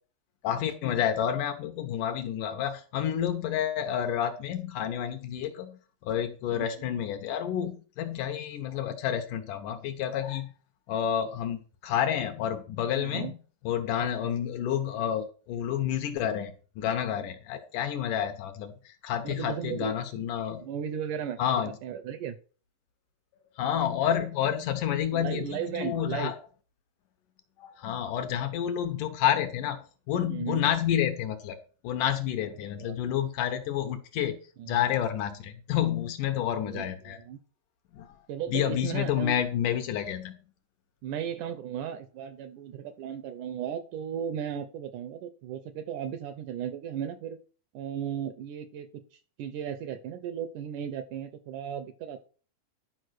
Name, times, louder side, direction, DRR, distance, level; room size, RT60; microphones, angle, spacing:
voice 1, 0.4-10.5 10.9-13.4 13.6-20.6 21.4-21.8 23.6-26.4 27.6-31.6 31.8-34.4 34.6-37.2 37.9-38.1 38.5-40.4, left 10 dB, 70° left, 8 dB, 2.2 m, -29 dB
voice 2, 13.0-13.3 14.2-14.3 19.2-19.9 20.6-21.4 21.8-22.4 25.1-26.3 30.3-30.6 32.6-33.0 34.6-34.7 36.5-37.4 38.3-39.3 41.0-47.4 47.7-48.9 49.1-52.2, right 8 dB, 75° right, 12 dB, 2.0 m, -36 dB
11.5 x 5.3 x 6.3 m, 0.39 s
omnidirectional pair, 4.2 m